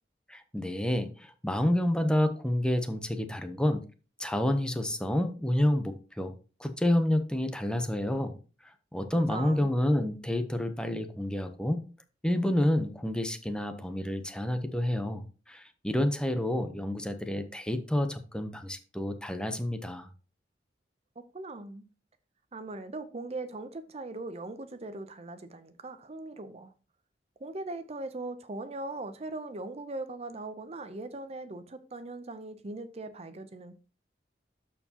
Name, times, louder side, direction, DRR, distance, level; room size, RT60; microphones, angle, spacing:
voice 1, 0.3-3.8 4.2-6.3 6.6-8.4 8.9-11.8 12.2-15.2 15.5-20.1, left 1 dB, 5° left, 0.7 m, -29 dB
voice 2, 9.1-9.7 21.2-21.8 22.5-26.7 27.4-33.7, right 2 dB, 35° right, 0.6 m, -40 dB
12.5 x 4.5 x 2.8 m
head